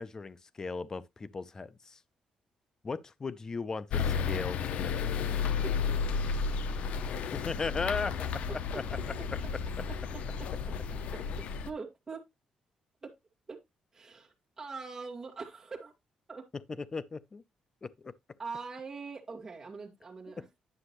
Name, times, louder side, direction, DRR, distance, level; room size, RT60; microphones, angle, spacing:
voice 1, 0.0-2.0 2.8-5.1 7.3-8.8 16.8-17.4 17.8-18.1, left 4 dB, 25° left, 0.5 m, -37 dB
sound 1, 3.9-11.7, left 6 dB, 70° left, 0.7 m, -32 dB
voice 2, 11.6-12.2 13.0-13.1 13.5-13.6 13.9-15.9 16.3-16.4 18.4-20.5, right 4 dB, 20° right, 2.0 m, -42 dB
9.9 x 6.4 x 3.0 m
cardioid pair, 135°, 2 cm